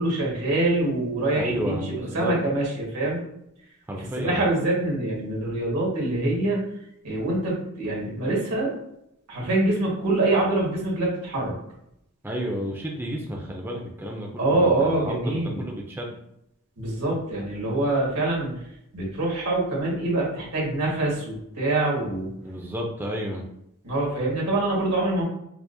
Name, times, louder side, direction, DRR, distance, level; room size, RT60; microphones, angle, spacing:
voice 1, 0.0-3.2 3.9-6.6 7.0-8.7 9.3-11.5 14.4-15.6 16.8-18.6 18.9-22.3 23.8-25.2, right 2 dB, 85° right, -4 dB, 1.5 m, -25 dB
voice 2, 1.4-2.4 3.9-4.4 12.2-16.2 22.4-23.4, equal, 10° right, 0 dB, 0.4 m, -31 dB
4.6 x 2.1 x 2.6 m, 0.79 s
head